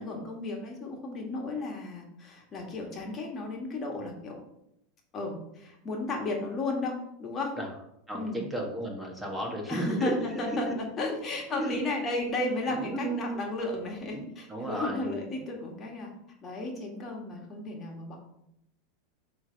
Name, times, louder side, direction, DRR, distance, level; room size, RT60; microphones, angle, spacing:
voice 1, 0.0-4.4 5.1-7.6 8.1-8.4 9.7-10.7 11.0-16.1 16.4-18.2, left 2 dB, 30° left, 0 dB, 1.7 m, -34 dB
voice 2, 8.1-10.1 10.5-10.7 11.0-11.1 11.5-11.8 12.7-13.5 14.1-15.4, right 1 dB, 10° right, 0 dB, 1.6 m, -34 dB
7.0 x 3.3 x 5.3 m, 0.79 s
supercardioid pair, 120°, 0 cm